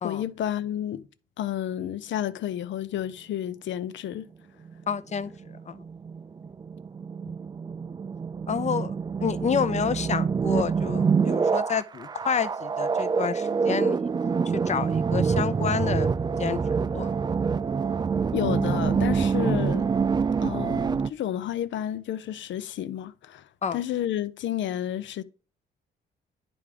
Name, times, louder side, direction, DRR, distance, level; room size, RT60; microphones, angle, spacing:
voice 1, 0.0-1.1 1.4-4.3 18.3-19.9 20.4-25.2, left 11 dB, 70° left, 0.7 m, -31 dB
sound 1, 4.6-21.1, right 5 dB, 20° right, 0.3 m, -26 dB
voice 2, 4.9-5.3 5.7-5.8 8.5-8.9 9.2-14.1 14.7-16.1 16.4-16.6 16.9-17.2 23.6-23.8, left 7 dB, 35° left, 0.7 m, -29 dB
10.5 x 3.5 x 5.0 m
cardioid pair, 90°, 20 cm